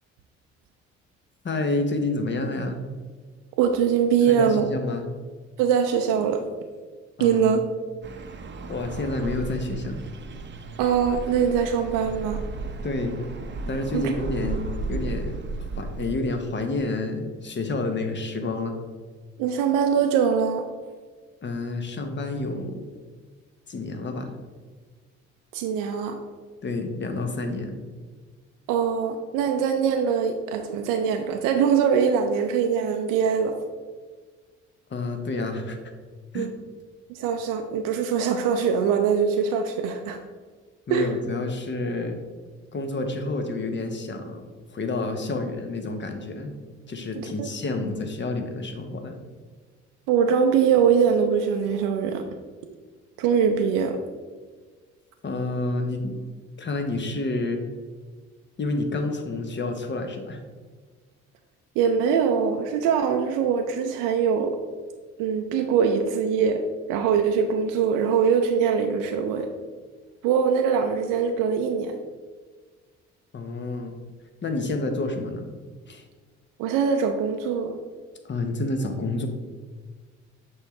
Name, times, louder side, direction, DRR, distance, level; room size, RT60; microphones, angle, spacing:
voice 1, 1.4-2.8 4.3-5.0 7.2-7.5 8.7-10.0 12.8-13.2 13.7-14.6 14.9-15.4 15.7-18.8 21.4-22.8 23.7-24.3 26.6-27.8 34.9-35.8 36.3-36.5 40.9-42.2 42.7-44.4 44.7-46.5 46.9-49.1 55.2-56.2 56.6-57.6 58.6-60.4 73.3-74.0 74.4-75.5 75.9-76.0 78.2-79.3, left 2 dB, 30° left, 5 dB, 1.0 m, -29 dB
voice 2, 3.6-4.7 5.6-6.4 7.2-7.6 10.8-12.4 13.9-14.1 19.4-20.7 25.5-26.2 28.7-33.6 36.3-36.5 37.1-40.2 40.9-41.1 47.1-47.5 50.1-52.2 53.2-54.0 61.8-64.6 65.2-66.6 66.9-69.5 70.2-72.0 76.6-77.8, right 7 dB, 65° right, 5 dB, 0.5 m, -22 dB
sound 1, 8.0-16.2, right 3 dB, 30° right, 0.7 m, -34 dB
6.4 x 4.7 x 3.1 m, 1.5 s
hypercardioid pair, 50°, 35 cm